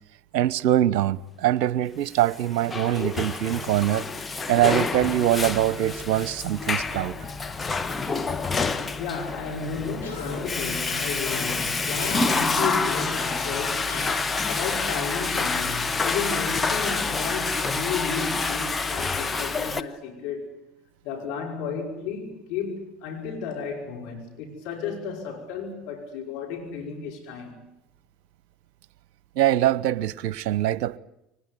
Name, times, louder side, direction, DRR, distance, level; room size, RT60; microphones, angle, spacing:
voice 1, 0.3-4.1 4.5-7.1 29.4-31.0, right 13 dB, 65° right, 0.9 m, -23 dB
Water / Toilet flush, 2.3-19.8, left 4 dB, 20° left, 1.5 m, -28 dB
voice 2, 9.0-14.2 14.4-20.5 21.0-27.6, left 5 dB, 65° left, 5.5 m, -33 dB
Cough, 9.9-15.7, left 5 dB, 85° left, 3.1 m, -42 dB
24.0 x 20.0 x 9.9 m
hypercardioid pair, 75°, 0 cm